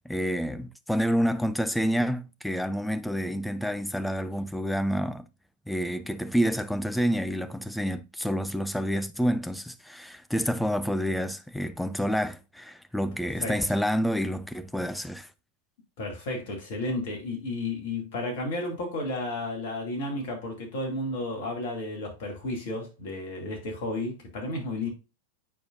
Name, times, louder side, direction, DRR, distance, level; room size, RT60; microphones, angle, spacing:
voice 1, 0.0-5.3 5.7-15.3, equal, ahead, 0.5 m, -28 dB
voice 2, 16.0-24.9, left 2 dB, 50° left, 2.3 m, -32 dB
8.3 x 4.8 x 2.5 m
figure-of-eight pair, 90°, 0 cm